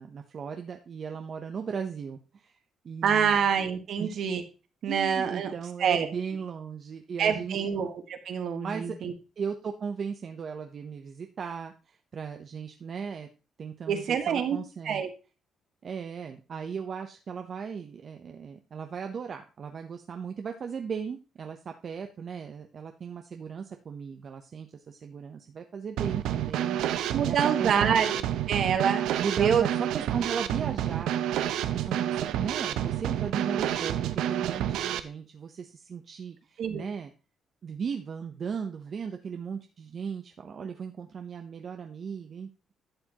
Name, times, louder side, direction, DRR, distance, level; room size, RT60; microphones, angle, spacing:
voice 1, 0.0-2.6 2.8-3.4 4.0-4.2 4.9-7.7 8.6-9.0 9.4-13.3 13.6-15.0 15.8-27.9 29.2-31.2 31.7-34.0 34.3-37.1 37.6-42.5, right 6 dB, 50° right, 5 dB, 0.8 m, -37 dB
voice 2, 3.0-4.4 4.8-5.5 5.8-6.1 7.2-9.1 13.9-14.6 14.8-15.1 27.1-28.2 28.5-29.0 29.4-29.6 36.6-36.9, right 7 dB, 70° right, 7 dB, 1.4 m, -26 dB
Drum kit / Snare drum, 26.0-35.0, right 11 dB, 90° right, 0.6 m, -29 dB
11.5 x 6.9 x 2.9 m, 0.32 s
cardioid pair, 90°, 0 cm